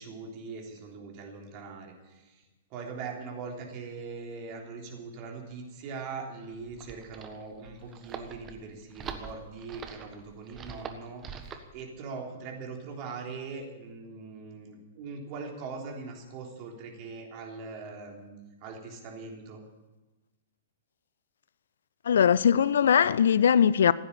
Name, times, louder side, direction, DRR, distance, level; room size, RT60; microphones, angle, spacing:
voice 1, 0.0-2.4 2.7-19.6, right 4 dB, 35° right, 3.5 m, -41 dB
sound 1, 6.5-11.7, right 7 dB, 20° right, 1.4 m, -43 dB
voice 2, 22.1-23.9, left 8 dB, 65° left, 0.4 m, -21 dB
15.5 x 9.6 x 8.7 m
figure-of-eight pair, 110°, 0 cm